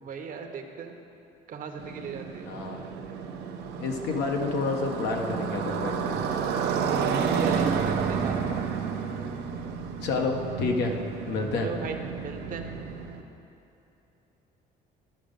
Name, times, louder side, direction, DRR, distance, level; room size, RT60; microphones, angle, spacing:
voice 1, 0.0-0.9 1.5-2.4 7.4-8.5 11.5-12.7, right 6 dB, 55° right, 5 dB, 0.9 m, -38 dB
Motorcycle, 1.8-13.2, right 6 dB, 75° right, 0.7 m, -31 dB
voice 2, 2.5-2.9 3.8-6.2 10.0-11.0 11.3-11.7, left 3 dB, 80° left, 2 dB, 1.0 m, -29 dB
13.0 x 5.1 x 5.2 m, 3.0 s
cardioid pair, 110°, 17 cm